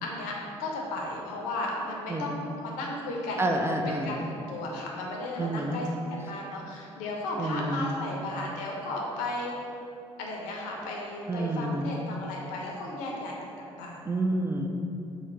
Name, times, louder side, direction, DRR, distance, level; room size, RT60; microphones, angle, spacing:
voice 1, 0.0-3.5 3.9-9.5 10.2-13.5 13.8-14.0, left 2 dB, 65° left, -1 dB, 0.7 m, -35 dB
voice 2, 3.4-4.3 5.4-5.8 7.4-8.0 11.3-12.0 14.1-14.7, right 1 dB, 15° right, 2 dB, 0.4 m, -29 dB
4.0 x 2.4 x 4.5 m, 2.7 s
figure-of-eight pair, 50°, 15 cm